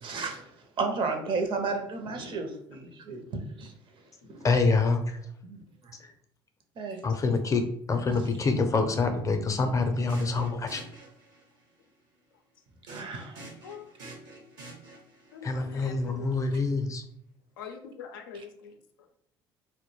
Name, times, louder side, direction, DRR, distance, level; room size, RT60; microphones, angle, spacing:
voice 1, 0.0-0.5 0.8-3.7 4.3-4.5 5.4-5.9 6.8-7.0 12.9-13.4 14.0-14.1, right 4 dB, 45° right, 5 dB, 0.6 m, -33 dB
voice 2, 4.4-5.2 6.0-6.1 7.0-7.6 7.9-10.8 15.4-17.0, left 3 dB, 30° left, 6 dB, 0.5 m, -26 dB
sound 1, 9.9-11.6 12.9-15.3, right 2 dB, 85° right, 1.0 m, -47 dB
voice 3, 13.6-14.4 15.3-16.4 17.6-19.1, left 6 dB, 85° left, 4 dB, 0.4 m, -45 dB
2.2 x 2.1 x 3.1 m, 0.68 s
hypercardioid pair, 65°, 11 cm